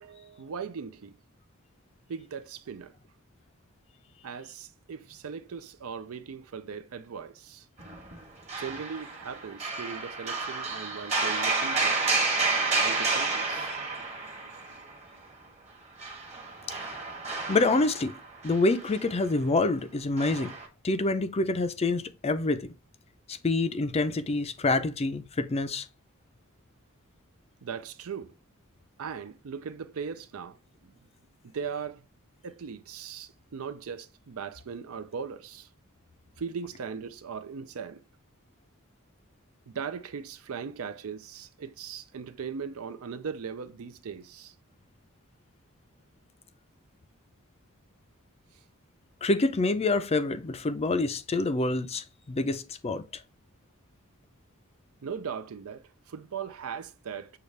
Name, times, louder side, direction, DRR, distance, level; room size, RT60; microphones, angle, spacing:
voice 1, 0.0-1.2 2.1-2.9 4.2-7.7 8.6-12.0 12.8-13.7 27.6-28.3 29.0-30.6 30.8-30.9 31.4-32.1 32.4-35.7 36.4-38.0 39.7-44.5 55.0-57.3, right 6 dB, 75° right, 0.5 m, -39 dB
sound 1, 7.8-8.2 8.5-14.9 16.0-19.1 20.2-20.7, right 3 dB, 30° right, 1.2 m, -30 dB
voice 2, 17.5-18.1 18.4-20.5 20.8-22.7 23.3-25.9 49.2-53.0, left 2 dB, 30° left, 0.5 m, -27 dB
6.7 x 2.4 x 3.2 m
head